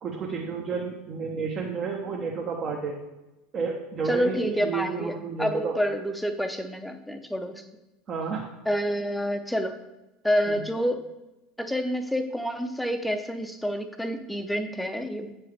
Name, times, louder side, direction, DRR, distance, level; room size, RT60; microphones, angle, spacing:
voice 1, 0.0-2.9 3.5-5.7 8.1-8.4 10.5-10.6, right 5 dB, 40° right, -1 dB, 1.0 m, -31 dB
voice 2, 4.1-7.6 8.7-9.8 10.2-11.0 11.6-15.3, equal, 5° left, 7 dB, 0.7 m, -28 dB
8.2 x 4.6 x 3.4 m, 1.0 s
figure-of-eight pair, 75°, 0 cm